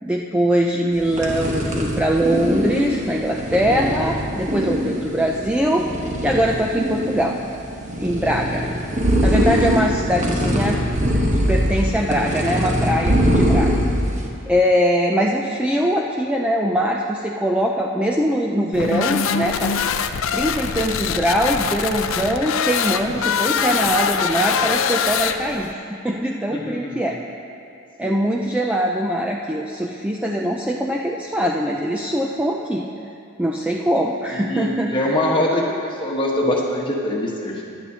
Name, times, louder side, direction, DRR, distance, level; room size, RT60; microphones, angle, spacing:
voice 1, 0.0-7.4 8.0-8.6 9.2-10.8 11.5-13.7 14.5-19.7 20.3-27.2 28.0-32.9 33.4-35.1, equal, 5° right, -1 dB, 0.4 m, -22 dB
sound 1, 0.9-14.3, equal, 35° right, 1.2 m, -22 dB
sound 2, 18.7-25.7, left 7 dB, 70° left, 0.5 m, -23 dB
voice 2, 26.5-27.2 28.0-28.2 34.3-37.8, left 1 dB, 25° left, -3 dB, 1.3 m, -23 dB
16.0 x 10.5 x 2.8 m, 2.5 s
head